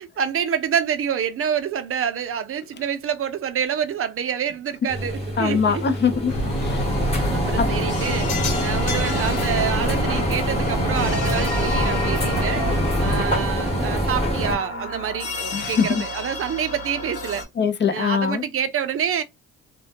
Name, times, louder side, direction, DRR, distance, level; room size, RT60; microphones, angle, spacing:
voice 1, 0.0-5.8 7.3-8.3 8.6-12.6 13.0-17.4 17.9-19.2, right 8 dB, 50° right, 0.5 m, -27 dB
sound 1, 4.9-14.5, equal, 20° left, 1.1 m, -25 dB
voice 2, 5.4-6.8 7.6-7.7 15.5-16.0 17.6-18.4, left 6 dB, 40° left, 0.4 m, -22 dB
sound 2, 6.3-13.2, left 1 dB, 85° left, 1.0 m, -28 dB
sound 3, 7.6-17.4, left 2 dB, 55° left, 1.0 m, -33 dB
2.2 x 2.1 x 2.7 m
cardioid pair, 90°, 30 cm